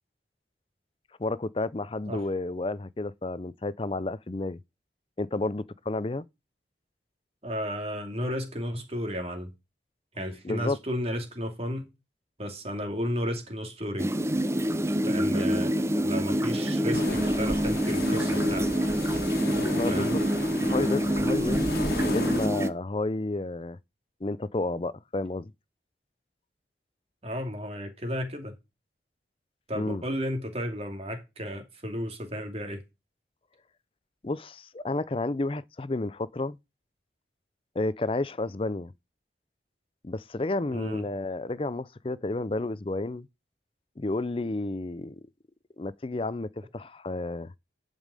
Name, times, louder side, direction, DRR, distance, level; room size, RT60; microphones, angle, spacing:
voice 1, 1.2-4.6 5.2-6.2 10.4-10.8 19.7-20.2 20.7-21.8 22.0-23.8 24.2-25.5 29.7-30.0 34.2-36.6 37.8-38.9 40.0-43.3 44.0-45.2 45.8-47.5, left 2 dB, 30° left, 0.5 m, -31 dB
voice 2, 7.4-9.5 10.1-11.9 12.4-14.1 15.0-18.8 19.9-20.2 27.2-28.6 29.7-32.8 40.7-41.1, equal, 35° right, 2.5 m, -33 dB
sound 1, 14.0-22.7, equal, 15° right, 0.6 m, -26 dB
sound 2, 16.9-22.5, left 2 dB, 55° left, 1.7 m, -35 dB
11.5 x 5.4 x 4.9 m
head